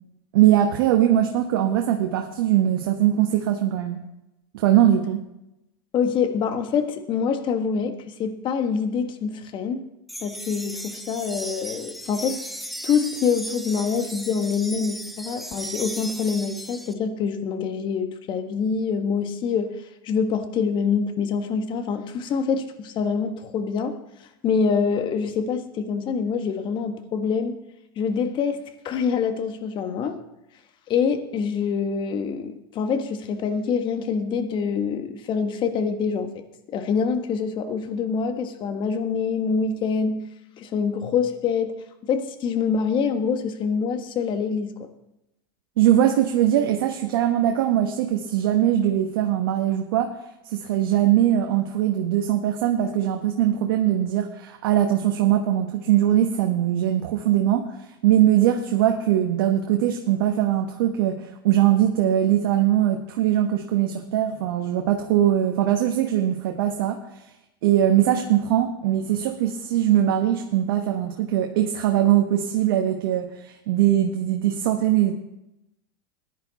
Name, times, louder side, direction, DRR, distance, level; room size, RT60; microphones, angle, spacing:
voice 1, 0.3-4.0 4.5-5.2 45.8-50.1 50.5-67.0 67.6-75.1, right 11 dB, 70° right, 4 dB, 1.1 m, -21 dB
voice 2, 5.9-9.8 10.2-12.4 12.8-19.7 20.0-24.0 24.4-27.6 28.0-30.2 30.9-36.4 36.7-40.2 40.6-41.7 42.0-44.9, left 6 dB, 40° left, 7 dB, 1.5 m, -25 dB
sound 1, 10.1-16.9, right 1 dB, ahead, 1.0 m, -36 dB
15.0 x 10.5 x 4.1 m, 0.90 s
hypercardioid pair, 105°, 12 cm